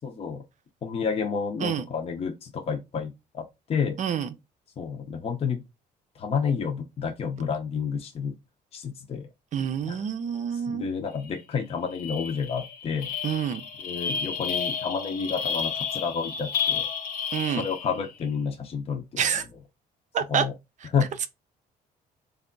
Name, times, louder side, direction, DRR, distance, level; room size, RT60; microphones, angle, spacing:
voice 1, 0.0-0.4 0.8-4.0 4.8-5.6 6.2-8.3 8.7-9.2 9.9-10.0 10.7-13.1 13.8-16.9 17.6-19.4 20.3-20.5 20.9-21.1, left 6 dB, 35° left, 0.7 m, -30 dB
voice 2, 4.0-4.3 9.5-10.9 13.2-13.6 17.3-17.7 19.2-19.5 20.1-20.5, right 8 dB, 45° right, 0.5 m, -27 dB
sound 1, 11.3-11.4 11.7-18.1, left 6 dB, 65° left, 1.0 m, -31 dB
3.4 x 2.3 x 3.8 m
cardioid pair, 110°, 17 cm